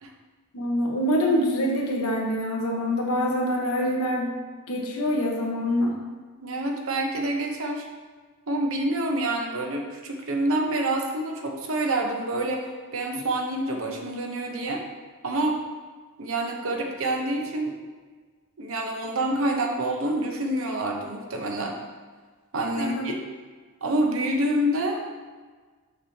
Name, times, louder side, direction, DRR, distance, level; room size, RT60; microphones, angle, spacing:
voice 1, 0.5-4.3 4.7-5.9 22.8-23.2, equal, 75° left, 0 dB, 1.1 m, -25 dB
voice 2, 6.4-7.9 8.5-14.8 15.2-15.6 16.2-17.7 18.6-21.7 22.5-23.2 23.8-25.2, right 1 dB, 65° right, 2 dB, 0.8 m, -27 dB
6.1 x 6.0 x 2.8 m, 1.4 s
head